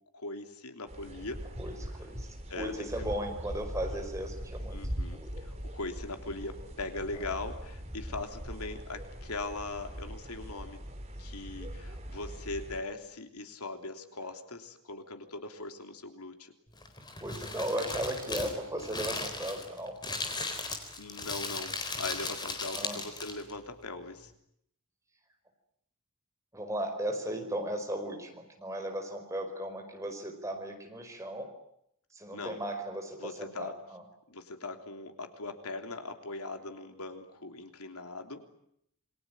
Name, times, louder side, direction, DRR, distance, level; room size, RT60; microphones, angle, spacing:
voice 1, 0.1-1.4 2.5-3.1 4.7-10.8 11.2-16.5 17.8-17.9 18.4-18.6 21.0-24.3 32.3-32.6 33.2-33.7 34.3-38.4, left 3 dB, 85° left, 6 dB, 3.3 m, -40 dB
sound 1, 0.9-12.8, equal, 30° right, 4.2 m, -41 dB
voice 2, 1.6-2.3 2.6-4.8 5.1-5.3 7.2-7.4 17.2-20.0 22.8-23.0 26.5-31.5 32.1-34.0, right 1 dB, 15° right, 4 dB, 4.9 m, -36 dB
Crumpling crinkling, 16.7-23.5, left 3 dB, 20° left, 4.0 m, -37 dB
28.0 x 23.0 x 9.1 m, 0.73 s
head